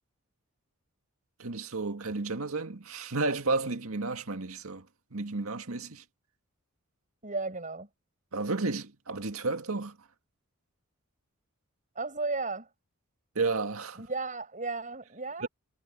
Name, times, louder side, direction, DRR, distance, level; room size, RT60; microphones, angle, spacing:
voice 1, 1.4-6.0 8.3-10.0 13.4-14.1 15.4-15.5, right 3 dB, 80° right, 1.9 m, -32 dB
voice 2, 7.2-7.9 12.0-12.7 14.0-15.5, right 3 dB, 35° right, 7.6 m, -34 dB
head